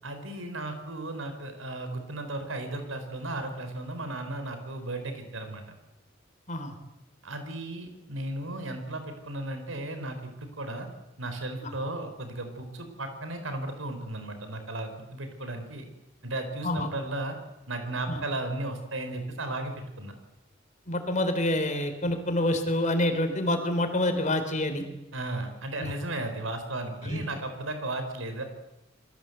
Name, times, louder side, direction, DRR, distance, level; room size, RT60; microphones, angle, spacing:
voice 1, 0.0-5.6 7.2-10.9 11.2-15.8 16.2-17.4 17.7-20.1 25.1-28.4, right 2 dB, 90° right, 7 dB, 4.8 m, -35 dB
voice 2, 20.9-24.9 25.8-25.9 27.1-27.2, left 1 dB, 40° left, 7 dB, 3.9 m, -27 dB
28.5 x 22.5 x 8.1 m, 0.92 s
head